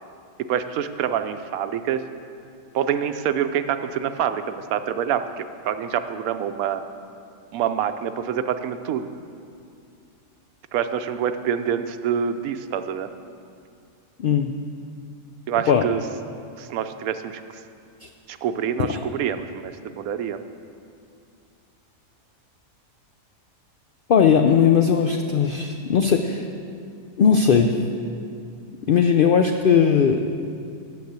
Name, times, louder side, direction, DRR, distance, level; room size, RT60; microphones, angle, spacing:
voice 1, 0.5-2.0 2.7-6.8 7.5-9.1 10.7-13.1 15.5-16.0 16.6-17.6 18.3-20.4, right 8 dB, 80° right, 10 dB, 1.0 m, -26 dB
voice 2, 14.2-14.5 15.7-15.9 18.0-18.1 18.9-19.0 24.1-26.5 27.2-27.8 28.9-30.2, left 7 dB, 75° left, 5 dB, 0.5 m, -18 dB
9.3 x 6.8 x 8.0 m, 2.4 s
omnidirectional pair, 1.5 m